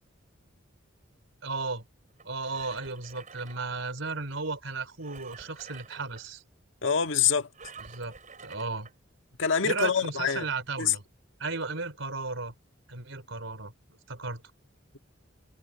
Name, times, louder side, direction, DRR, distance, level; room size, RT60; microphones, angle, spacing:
voice 1, 1.4-1.8 2.2-6.4 7.9-8.1 8.4-8.9 9.6-11.0 11.4-12.5 12.9-14.4, right 3 dB, 75° right, 3.8 m, -34 dB
Engine, 2.2-4.1 5.0-6.2 7.5-8.9 9.6-9.7, right 5 dB, 40° right, 5.3 m, -49 dB
voice 2, 6.8-7.5 9.4-10.5 10.8-10.9, left 7 dB, 70° left, 1.8 m, -25 dB
head